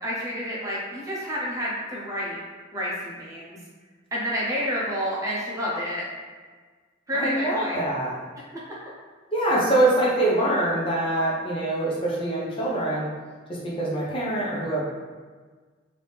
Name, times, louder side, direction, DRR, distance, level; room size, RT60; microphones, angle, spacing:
voice 1, 0.0-2.4 2.7-3.6 4.1-6.0 7.1-7.8, equal, 15° right, -6 dB, 0.7 m, -29 dB
voice 2, 7.1-8.1 9.3-13.1 13.5-14.8, right 1 dB, 25° left, -5 dB, 0.6 m, -24 dB
3.3 x 2.7 x 3.3 m, 1.5 s
head